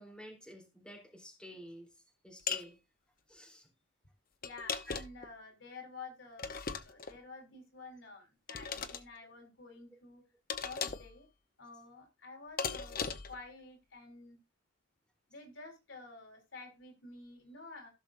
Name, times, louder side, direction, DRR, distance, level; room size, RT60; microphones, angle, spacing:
voice 1, 0.0-1.9 2.2-2.8 3.3-3.7, equal, 5° left, 0 dB, 3.3 m, -51 dB
sound 1, 2.5-2.7 4.4-5.3 6.4-7.2 8.5-9.0 10.5-11.1 12.6-13.4, left 6 dB, 50° left, 0.9 m, -38 dB
voice 2, 4.4-10.2 10.6-11.3 11.6-14.4 15.3-17.9, left 3 dB, 85° left, 4 dB, 3.7 m, -50 dB
16.0 x 6.3 x 2.5 m, 0.25 s
head